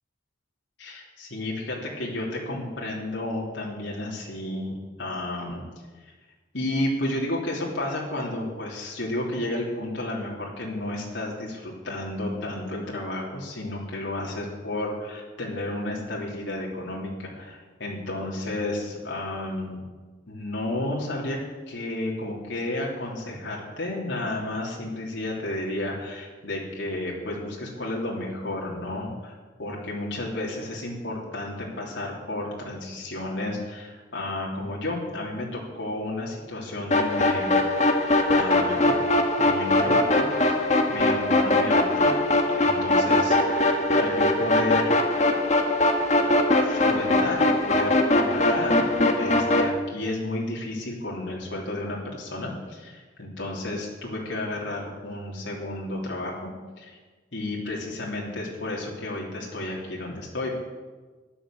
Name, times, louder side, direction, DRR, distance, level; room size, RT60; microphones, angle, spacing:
voice 1, 0.8-5.6 6.0-6.1 6.5-19.8 20.3-21.4 21.7-29.3 29.6-37.6 38.3-39.0 39.4-40.2 40.9-42.1 42.6-44.9 46.6-48.8 49.2-56.5 56.8-57.0 57.3-60.5, left 1 dB, 75° left, -3 dB, 3.2 m, -32 dB
sound 1, 36.9-49.7, left 2 dB, 40° left, 1.6 m, -21 dB
14.0 x 11.0 x 7.7 m, 1.3 s
head